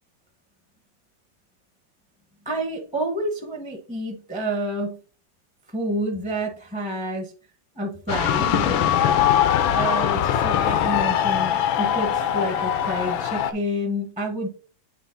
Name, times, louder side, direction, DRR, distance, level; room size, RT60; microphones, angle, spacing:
voice 1, 2.4-5.0 5.7-7.3 7.7-8.8 9.7-14.5, right 1 dB, 5° right, 1 dB, 0.7 m, -29 dB
sound 1, 8.1-13.5, left 9 dB, 80° left, 1.4 m, -21 dB
9.1 x 3.2 x 3.8 m, 0.37 s
omnidirectional pair, 2.1 m